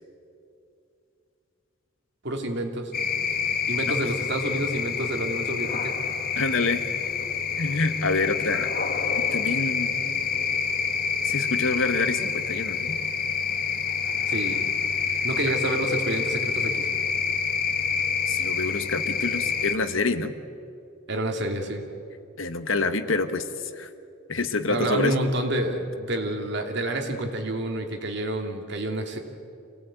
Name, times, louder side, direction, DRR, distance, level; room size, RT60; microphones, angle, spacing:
voice 1, 2.2-2.9 3.7-5.9 14.3-14.6 15.2-16.9 21.1-21.8 24.7-29.2, right 1 dB, 60° right, 3 dB, 2.8 m, -28 dB
sound 1, 2.9-19.7, left 6 dB, 50° left, 1.5 m, -27 dB
voice 2, 6.3-6.8 7.6-8.7 9.2-9.9 11.2-13.0 18.3-20.3 22.4-23.9 24.3-25.1, left 3 dB, 90° left, 10 dB, 1.4 m, -27 dB
26.0 x 18.0 x 9.1 m, 2.6 s
head